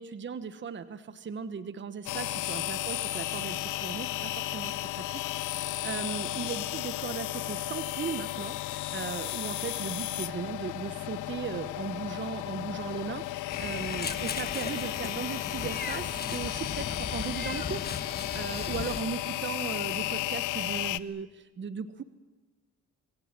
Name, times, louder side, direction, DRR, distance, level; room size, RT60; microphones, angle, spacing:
voice 1, 0.0-17.9 18.3-22.0, right 6 dB, 40° right, 12 dB, 1.2 m, -37 dB
sound 1, 2.1-21.0, left 16 dB, 85° left, 0.8 m, -34 dB
Meow, 13.5-19.0, left 5 dB, 30° left, 1.6 m, -37 dB
26.5 x 23.0 x 7.4 m, 1.3 s
cardioid pair, 90°, 30 cm